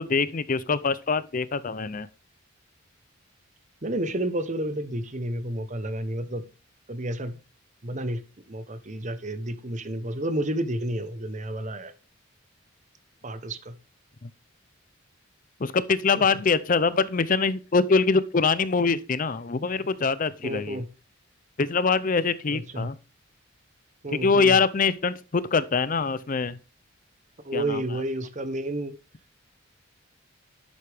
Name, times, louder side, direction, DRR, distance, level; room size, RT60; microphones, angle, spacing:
voice 1, 0.0-2.1 14.2-14.3 15.6-20.8 21.6-23.0 24.1-26.6 27.5-27.8, left 4 dB, 40° left, 0.5 m, -24 dB
voice 2, 3.8-6.4 6.9-7.3 7.8-8.2 8.5-11.9 13.2-13.8 20.4-20.9 22.5-22.9 24.0-24.6 27.4-28.9, right 1 dB, 35° right, 1.0 m, -30 dB
11.0 x 8.3 x 3.5 m
head